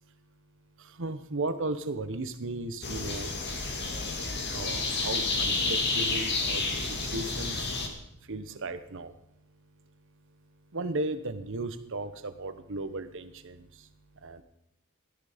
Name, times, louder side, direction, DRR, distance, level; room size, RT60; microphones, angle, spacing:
voice 1, 0.0-3.3 4.5-7.8 8.2-14.4, right 2 dB, 60° right, 11 dB, 1.0 m, -37 dB
sound 1, 2.8-7.9, left 3 dB, 50° left, 2.2 m, -30 dB
16.5 x 12.5 x 5.1 m, 0.81 s
head